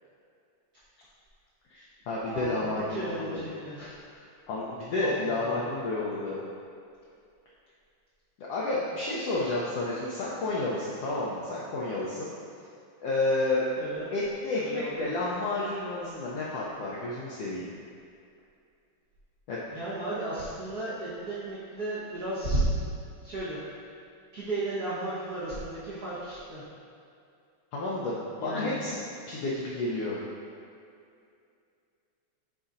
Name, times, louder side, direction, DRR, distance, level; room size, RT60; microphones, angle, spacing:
voice 1, 1.7-3.4 4.5-6.4 8.4-12.3 13.0-13.6 14.1-17.7 19.5-19.6 27.7-29.0 29.3-30.2, left 2 dB, 75° left, -6 dB, 1.4 m, -31 dB
voice 2, 2.3-2.6 2.9-4.3 5.0-5.7 13.7-14.0 14.6-15.1 19.7-22.7 23.2-23.6 24.3-26.6 28.4-28.8, right 2 dB, 55° right, -12 dB, 1.0 m, -34 dB
9.6 x 4.1 x 2.5 m, 2.4 s
omnidirectional pair, 3.4 m